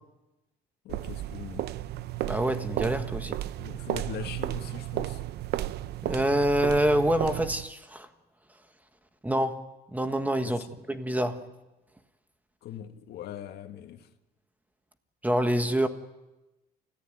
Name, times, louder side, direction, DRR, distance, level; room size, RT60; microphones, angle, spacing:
voice 1, 0.8-1.7 3.6-5.2 10.4-10.8 12.6-14.1, left 10 dB, 75° left, 2.0 m, -41 dB
sound 1, 0.9-7.7, right 14 dB, 75° right, 0.7 m, -33 dB
voice 2, 2.2-3.3 6.0-8.1 9.2-10.6 10.9-11.5 15.2-15.9, right 1 dB, 10° right, 1.6 m, -26 dB
30.0 x 15.0 x 9.1 m
cardioid pair, 110°, 17 cm